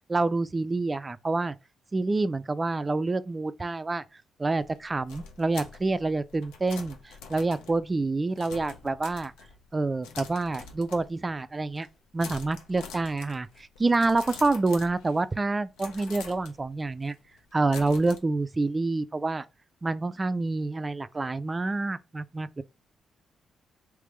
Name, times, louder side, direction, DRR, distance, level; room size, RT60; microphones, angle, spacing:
voice 1, 0.1-1.6 1.9-4.0 4.4-9.3 9.7-11.9 12.1-17.2 17.5-19.4 19.8-22.6, right 3 dB, 30° right, 0.3 m, -27 dB
sound 1, 4.6-9.7 10.0-11.4 11.7-11.9 12.2-15.4 15.8-18.2, left 5 dB, 85° left, 0.5 m, -46 dB
3.4 x 3.1 x 3.2 m
hypercardioid pair, 45°, 0 cm